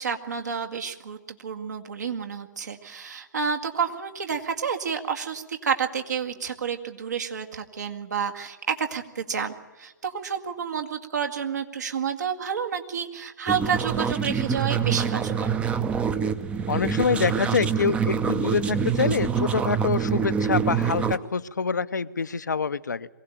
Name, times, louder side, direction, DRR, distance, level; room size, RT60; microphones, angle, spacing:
voice 1, 0.0-15.5, right 6 dB, 65° right, 4 dB, 2.1 m, -30 dB
sound 1, 13.5-21.2, right 7 dB, 10° right, 0.7 m, -26 dB
voice 2, 16.7-23.1, left 5 dB, 70° left, 13 dB, 0.7 m, -26 dB
23.0 x 17.0 x 9.1 m, 1.2 s
figure-of-eight pair, 125°, 10 cm